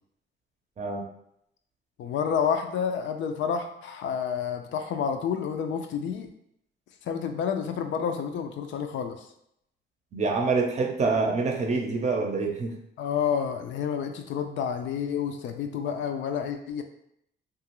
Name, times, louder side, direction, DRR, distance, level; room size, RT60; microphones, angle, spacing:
voice 1, 2.0-6.3 7.0-9.3 13.0-16.8, left 7 dB, 70° left, 6 dB, 0.4 m, -29 dB
voice 2, 10.1-12.7, right 4 dB, 35° right, 2 dB, 0.6 m, -26 dB
2.9 x 2.4 x 2.9 m, 0.74 s
cardioid pair, 90°, 20 cm